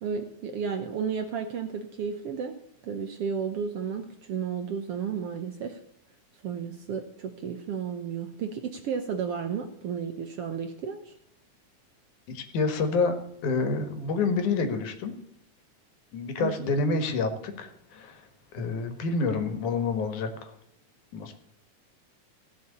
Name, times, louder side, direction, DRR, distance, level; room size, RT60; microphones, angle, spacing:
voice 1, 0.0-2.6 2.8-5.8 6.4-11.1 16.4-16.5, right 6 dB, 65° right, 6 dB, 1.6 m, -33 dB
voice 2, 12.3-13.2 13.4-15.1 16.1-18.2 18.5-20.5 21.1-21.3, left 4 dB, 75° left, 8 dB, 3.0 m, -28 dB
16.5 x 6.1 x 8.5 m, 0.74 s
omnidirectional pair, 3.6 m